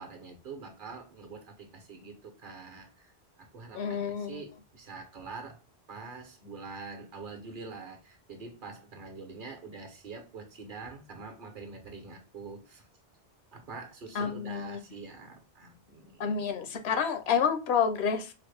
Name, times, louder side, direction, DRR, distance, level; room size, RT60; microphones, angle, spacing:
voice 1, 0.0-3.1 3.4-5.6 5.9-12.9 13.5-16.4, right 4 dB, 55° right, 4 dB, 0.8 m, -45 dB
voice 2, 3.7-4.4 14.1-14.8 16.2-18.3, left 7 dB, 80° left, 7 dB, 0.9 m, -29 dB
3.8 x 2.0 x 3.2 m, 0.32 s
omnidirectional pair, 1.1 m